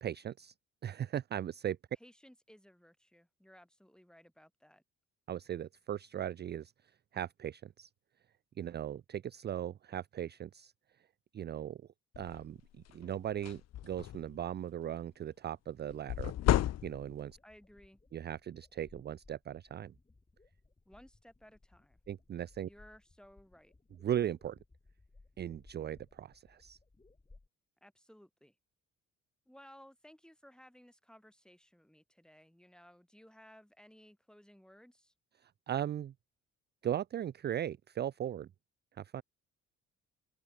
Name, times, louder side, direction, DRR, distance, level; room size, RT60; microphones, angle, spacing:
voice 1, 0.0-0.5 0.8-1.8 5.3-6.7 7.1-7.9 8.6-10.7 11.3-11.8 12.2-16.3 16.8-17.4 18.1-19.9 22.1-22.7 24.0-24.6 25.4-26.8 35.4-36.1 36.8-38.5 39.0-39.2, right 10 dB, 35° right, 0.4 m, -38 dB
voice 2, 2.0-4.8 17.4-18.0 20.8-22.0 22.7-23.8 27.8-28.5 29.5-35.1, equal, ahead, 6.9 m, -59 dB
sound 1, 12.1-12.4 12.9-13.0 13.3-14.4 16.1-17.3, left 12 dB, 60° left, 0.7 m, -32 dB
sound 2, 15.7-27.5, left 3 dB, 20° left, 4.6 m, -63 dB
cardioid pair, 90°, 30 cm